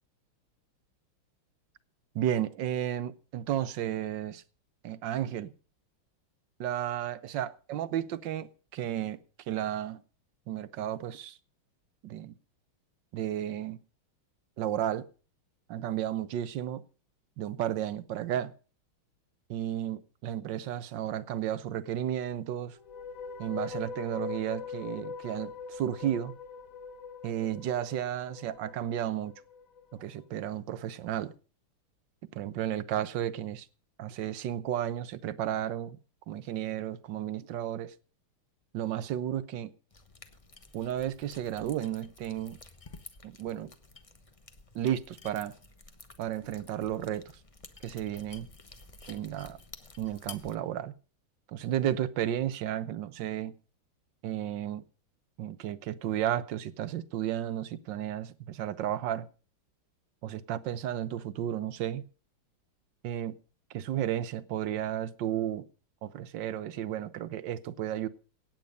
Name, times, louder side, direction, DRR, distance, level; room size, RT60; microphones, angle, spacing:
voice 1, 2.1-4.4 4.8-5.5 6.6-10.0 10.5-11.4 12.0-12.3 13.1-13.8 14.6-15.1 15.7-16.8 17.4-18.5 19.5-22.8 23.4-26.3 27.2-29.3 29.9-31.3 32.3-33.7 34.0-36.0 36.3-37.9 38.7-39.7 40.7-42.6 43.2-43.7 44.7-45.5 46.2-47.2 47.8-48.5 49.1-49.6 50.0-50.9 51.5-53.6 54.2-54.8 55.4-59.3 60.2-62.0 63.0-63.4 63.7-65.7 66.0-68.1, right 11 dB, 65° right, 1.4 m, -33 dB
sound 1, 22.7-30.0, left 5 dB, 45° left, 1.6 m, -42 dB
sound 2, 39.9-50.6, left 3 dB, 25° left, 0.8 m, -52 dB
17.0 x 9.0 x 5.2 m
omnidirectional pair, 2.3 m